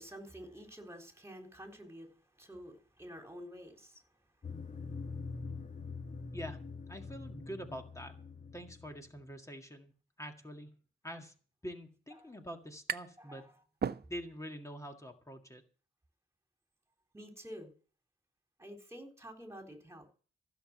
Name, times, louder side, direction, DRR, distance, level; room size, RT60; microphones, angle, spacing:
voice 1, 0.0-2.1 2.4-4.0 12.2-12.3 13.2-13.5 17.1-17.7 18.6-20.1, equal, 15° right, 3 dB, 4.1 m, -49 dB
sound 1, 4.4-9.2, left 4 dB, 35° left, 1.5 m, -44 dB
voice 2, 6.9-8.2 8.5-9.9 10.2-10.8 11.0-11.3 11.6-13.5 14.1-15.6, equal, 15° left, 4 dB, 1.9 m, -45 dB
sound 2, 12.2-13.3 13.6-14.5, right 7 dB, 50° right, 0.6 m, -38 dB
15.5 x 7.0 x 7.8 m, 0.39 s
wide cardioid pair, 100°, 21 cm